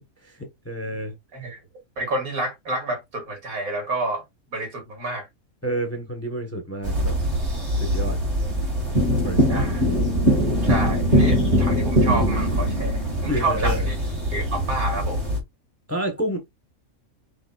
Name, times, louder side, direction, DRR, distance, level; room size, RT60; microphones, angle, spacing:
voice 1, 0.6-1.1 5.6-7.1 7.8-8.2 9.2-9.8 13.3-13.9 15.9-16.4, right 1 dB, 10° left, 0.9 m, -29 dB
voice 2, 2.0-4.2 4.5-5.3 9.5-9.8 10.6-13.9 14.3-15.2, right 2 dB, 80° right, 2.6 m, -29 dB
sound 1, 6.8-15.4, equal, 50° right, 2.5 m, -22 dB
5.0 x 4.3 x 2.3 m
omnidirectional pair, 1.5 m